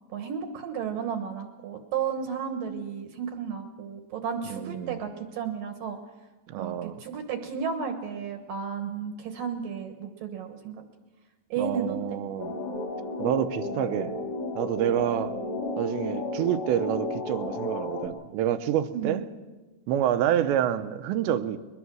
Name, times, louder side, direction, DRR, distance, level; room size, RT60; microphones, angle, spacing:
voice 1, 0.1-6.0 6.6-10.8 11.5-12.2 18.9-19.3, right 7 dB, 65° right, 2.5 m, -33 dB
voice 2, 4.4-5.0 6.5-7.0 11.6-12.6 13.2-14.2 14.6-15.4 15.8-19.2 19.9-21.6, right 10 dB, 80° right, 3.1 m, -28 dB
sound 1, 12.4-18.1, left 2 dB, 35° left, 2.9 m, -33 dB
22.0 x 21.5 x 6.3 m
omnidirectional pair, 5.1 m